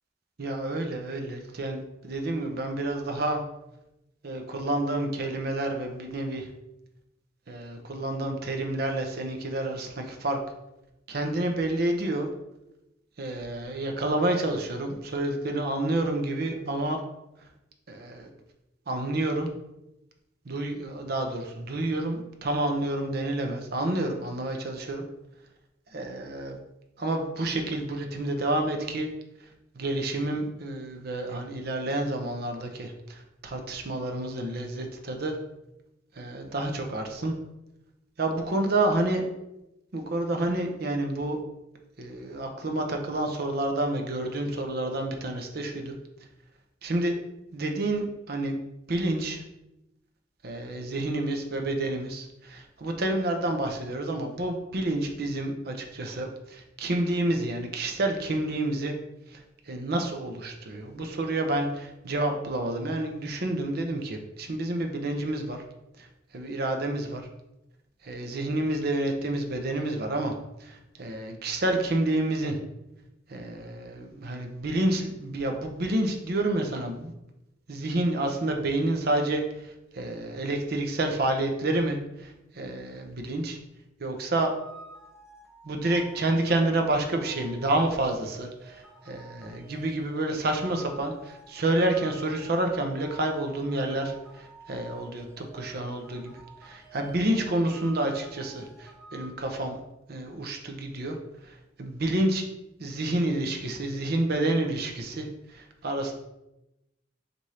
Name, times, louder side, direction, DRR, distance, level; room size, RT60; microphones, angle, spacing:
voice 1, 0.4-3.4 4.2-6.5 7.5-10.4 11.1-12.3 13.2-17.0 17.9-18.3 18.9-19.5 20.4-25.0 25.9-26.6 27.0-29.1 29.7-35.4 36.1-37.3 38.2-39.2 39.9-41.4 42.0-46.0 46.8-47.1 47.5-48.6 48.9-49.4 50.4-59.0 59.3-65.6 66.0-66.1 66.3-67.3 68.0-70.3 70.6-72.6 73.3-77.1 77.7-83.6 84.0-84.5 85.6-99.8 100.1-101.2 101.4-102.4 102.8-106.1, right 1 dB, 55° right, 4 dB, 0.6 m, -29 dB
sound 1, 84.5-99.3, right 3 dB, 5° right, 1.1 m, -50 dB
4.8 x 2.6 x 4.2 m, 0.92 s
head